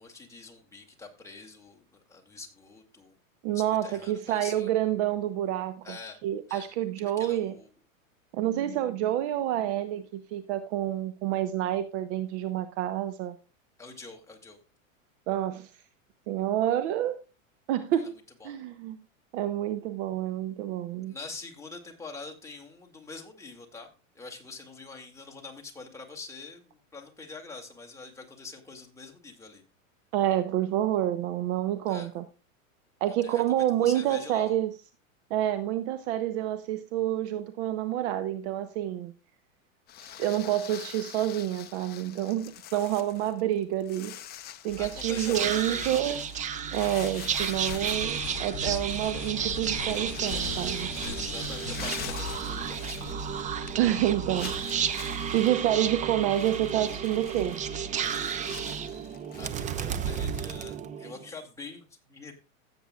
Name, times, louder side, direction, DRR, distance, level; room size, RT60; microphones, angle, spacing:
voice 1, 0.0-3.2 3.5-4.7 5.8-6.2 6.5-6.7 7.2-7.8 13.8-14.6 18.0-18.1 18.4-18.5 21.1-23.9 24.1-29.6 31.9-32.1 33.2-34.5 44.8-46.3 51.0-53.2 54.5-54.6 59.3-62.3, left 3 dB, 5° left, 2.2 m, -45 dB
voice 2, 3.4-6.0 6.2-7.6 8.3-13.4 15.3-15.7 16.3-17.2 17.7-18.1 18.4-19.0 19.3-21.1 30.1-32.3 33.0-34.7 35.3-39.1 40.0-44.2 44.6-46.2 46.7-50.9 53.8-54.8 55.3-57.6, right 12 dB, 55° right, 0.9 m, -28 dB
sound 1, 39.9-53.7 53.9-54.0 54.4-59.5, left 11 dB, 25° left, 0.6 m, -45 dB
Whispering, 44.7-61.3, right 7 dB, 20° right, 0.6 m, -33 dB
sound 2, 47.4-54.7, left 11 dB, 50° left, 1.2 m, -41 dB
16.0 x 8.0 x 2.3 m
hypercardioid pair, 120°, 41 cm